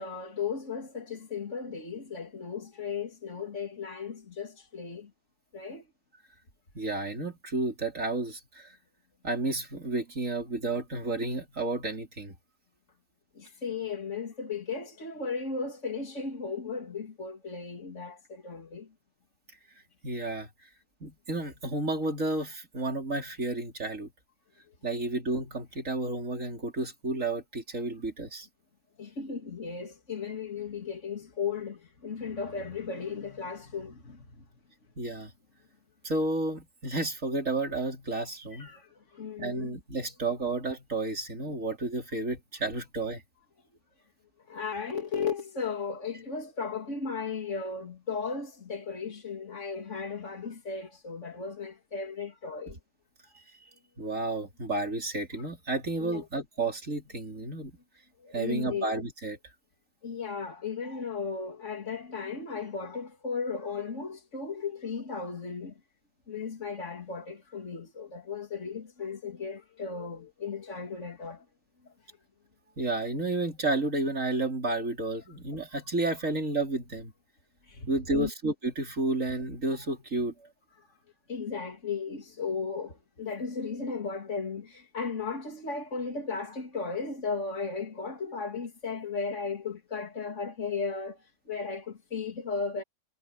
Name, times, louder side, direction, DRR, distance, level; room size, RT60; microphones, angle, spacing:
voice 1, 0.0-5.1 5.5-5.8 13.3-18.9 29.0-34.4 38.5-39.8 44.5-52.8 56.0-56.2 58.2-58.9 60.0-65.7 66.3-71.4 77.6-78.3 80.8-80.9 81.3-92.8, left 5 dB, 70° left, 2.9 m, -36 dB
voice 2, 6.7-8.7 9.2-12.4 20.0-20.5 21.0-24.1 24.8-28.5 35.0-35.3 36.0-38.7 39.4-43.2 54.0-57.7 58.3-59.4 72.8-77.1 77.9-80.3, right 2 dB, 85° right, 4.5 m, -31 dB
omnidirectional pair, 1.3 m